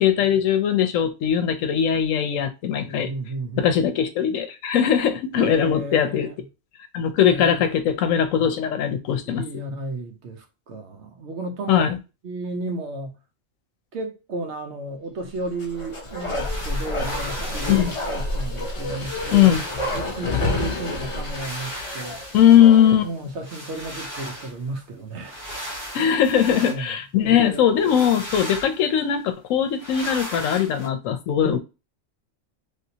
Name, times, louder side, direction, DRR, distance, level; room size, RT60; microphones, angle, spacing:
voice 1, 0.0-3.1 3.6-6.3 6.9-9.4 11.7-12.0 17.7-17.9 19.3-19.6 22.3-23.1 25.9-31.6, left 9 dB, 85° left, 1.0 m, -20 dB
voice 2, 2.8-3.7 5.4-6.5 7.3-7.6 9.2-11.8 12.2-13.2 13.9-19.5 19.8-22.2 23.0-25.9 26.4-26.9 27.2-27.6 31.4-31.6, right 2 dB, 65° right, 1.0 m, -33 dB
Bark, 15.5-23.1 23.4-23.5, left 2 dB, 30° left, 0.7 m, -29 dB
sound 1, 16.4-18.2 18.7-18.8 19.0-20.1 21.2-22.8 23.4-24.6 25.2-26.8 27.8-28.9 29.8-30.9, equal, 35° right, 1.8 m, -36 dB
3.4 x 2.7 x 2.7 m
omnidirectional pair, 1.3 m